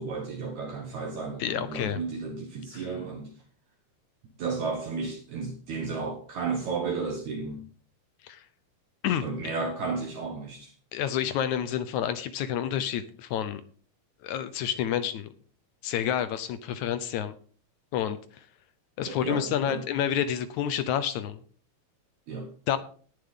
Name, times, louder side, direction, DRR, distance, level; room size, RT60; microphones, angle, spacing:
voice 1, 0.0-3.3 4.4-7.6 9.2-10.7 19.0-19.8 22.3-22.5, right 4 dB, 65° right, 2.6 m, -33 dB
voice 2, 1.4-2.0 2.7-2.8 8.2-8.5 9.0-9.2 10.9-13.6 14.2-15.3 15.8-17.3 17.9-18.4 19.0-21.4 22.7-22.8, left 9 dB, 75° left, 1.9 m, -29 dB
18.0 x 7.1 x 3.7 m
omnidirectional pair, 3.8 m